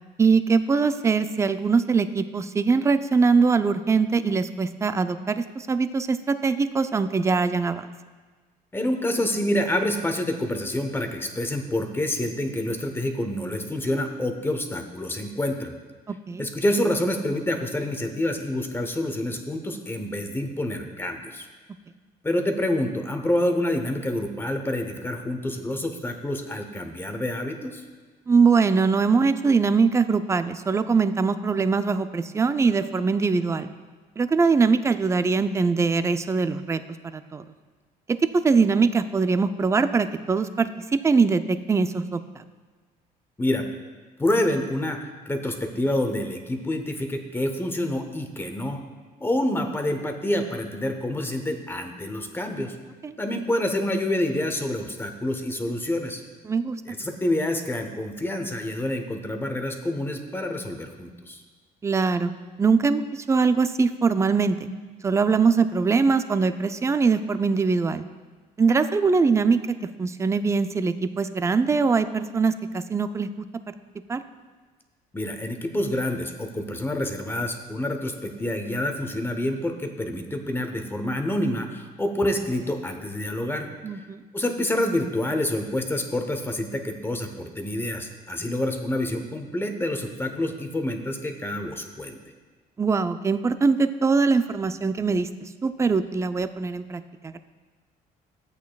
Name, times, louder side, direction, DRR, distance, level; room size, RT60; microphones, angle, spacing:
voice 1, 0.2-7.9 16.1-16.5 28.3-33.7 34.2-37.4 38.4-40.7 41.0-42.4 53.0-53.1 56.5-56.8 61.8-62.3 62.6-64.7 65.0-68.0 68.6-73.3 74.1-74.2 83.8-84.2 92.8-95.3 95.6-97.4, right 4 dB, 15° right, 11 dB, 0.4 m, -22 dB
voice 2, 8.7-15.8 16.4-21.5 22.2-27.8 43.4-43.6 44.2-45.0 45.3-48.8 49.2-52.8 53.2-56.2 56.9-61.4 75.1-83.7 84.3-92.2, left 1 dB, 15° left, 5 dB, 0.8 m, -27 dB
13.0 x 8.1 x 2.3 m, 1.4 s
cardioid pair, 110°, 17 cm